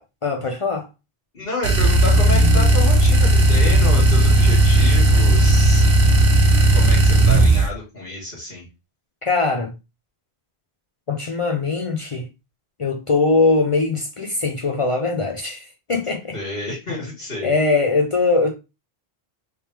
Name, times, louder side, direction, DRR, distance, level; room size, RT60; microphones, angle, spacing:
voice 1, 0.2-0.9 9.2-9.7 11.1-12.3 12.8-16.3 17.4-18.5, left 3 dB, 45° left, 0.4 m, -21 dB
voice 2, 1.3-5.9 6.7-8.7 16.3-17.5, left 2 dB, 65° left, 1.8 m, -29 dB
sound 1, 1.6-7.7, right 2 dB, 70° right, 0.9 m, -14 dB
3.2 x 3.2 x 2.8 m
omnidirectional pair, 1.0 m